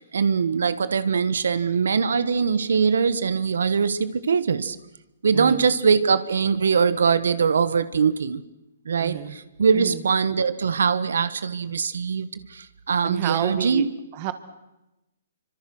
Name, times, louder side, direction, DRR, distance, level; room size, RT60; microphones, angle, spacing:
voice 1, 0.0-4.8 5.2-8.4 8.8-13.8, right 6 dB, 80° right, 14 dB, 1.5 m, -22 dB
voice 2, 5.3-5.7 9.0-9.4 9.7-10.0 13.0-13.9 14.1-14.3, right 13 dB, 30° right, 11 dB, 1.8 m, -30 dB
27.5 x 25.5 x 6.2 m, 0.95 s
hypercardioid pair, 170°, 0 cm